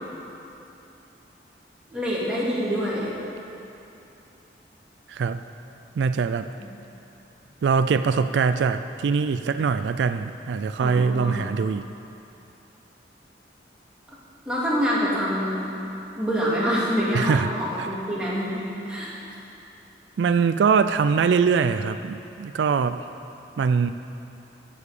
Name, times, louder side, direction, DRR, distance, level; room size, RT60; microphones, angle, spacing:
voice 1, 1.9-3.2 6.6-6.7 10.8-11.4 14.5-15.6 16.2-19.2, equal, 5° right, -7 dB, 2.2 m, -26 dB
voice 2, 5.1-5.4 6.0-6.5 7.6-11.9 17.1-17.9 20.2-23.0 23.6-23.9, right 5 dB, 80° right, 10 dB, 0.3 m, -23 dB
15.0 x 7.1 x 4.9 m, 2.9 s
head